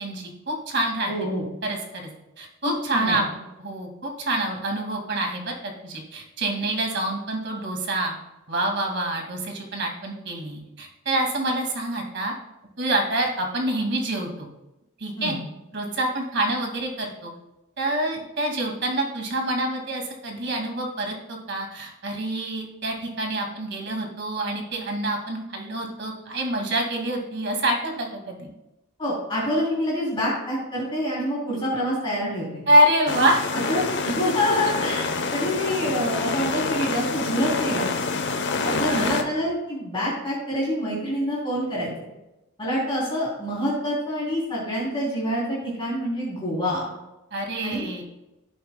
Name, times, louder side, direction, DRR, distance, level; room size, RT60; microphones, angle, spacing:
voice 1, 0.0-1.1 1.6-2.1 2.4-3.3 3.6-8.2 8.5-12.3 12.8-14.5 15.0-15.4 15.7-17.3 17.8-28.5 32.7-33.4 33.7-33.8 38.6-39.3 47.3-48.0, right 1 dB, 50° right, 1 dB, 2.1 m, -26 dB
voice 2, 1.0-1.4 2.9-3.2 15.1-15.4 29.0-32.6 33.2-37.9 38.6-41.9 42.6-46.9 47.6-47.9, equal, 25° left, -6 dB, 3.2 m, -26 dB
sound 1, 33.1-39.2, left 4 dB, 55° left, 0.9 m, -27 dB
15.5 x 7.7 x 2.2 m, 0.96 s
head